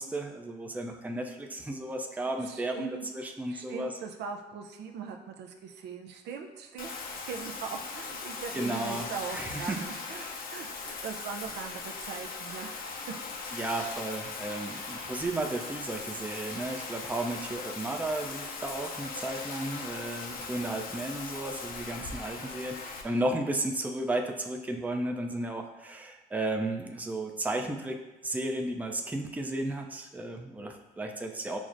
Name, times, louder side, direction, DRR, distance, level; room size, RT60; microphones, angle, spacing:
voice 1, 0.0-3.9 8.5-9.9 10.2-10.4 13.5-31.6, right 2 dB, 10° right, 3 dB, 0.4 m, -34 dB
voice 2, 2.2-3.1 3.5-6.9 7.3-9.8 10.1-12.7, right 6 dB, 75° right, 4 dB, 0.4 m, -40 dB
Bathtub (filling or washing), 6.8-23.0, left 4 dB, 55° left, 0.6 m, -39 dB
5.9 x 2.1 x 2.5 m, 1.0 s
supercardioid pair, 70°, 18 cm